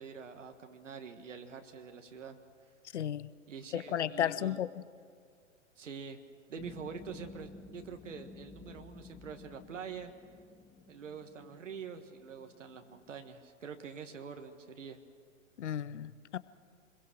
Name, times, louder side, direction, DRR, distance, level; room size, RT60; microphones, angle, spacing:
voice 1, 0.0-2.4 3.5-4.6 5.8-6.2 6.5-10.1 10.9-15.0, right 6 dB, 70° right, 6 dB, 1.6 m, -45 dB
voice 2, 2.9-3.3 3.7-4.7 15.6-16.4, left 10 dB, 60° left, 18 dB, 0.8 m, -33 dB
sound 1, 6.6-13.3, left 4 dB, 10° left, 0.7 m, -53 dB
26.0 x 21.5 x 6.3 m, 2.2 s
figure-of-eight pair, 105°, 39 cm